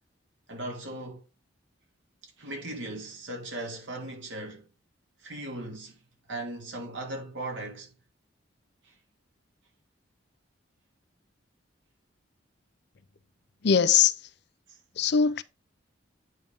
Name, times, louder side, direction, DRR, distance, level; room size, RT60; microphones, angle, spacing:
voice 1, 0.5-1.2 2.2-4.7 5.2-6.0 6.3-7.9 8.8-8.9 14.7-14.8, right 1 dB, 70° right, 2.7 m, -38 dB
voice 2, 13.6-14.2 15.0-15.4, left 7 dB, 55° left, 0.5 m, -21 dB
8.7 x 3.8 x 5.2 m
head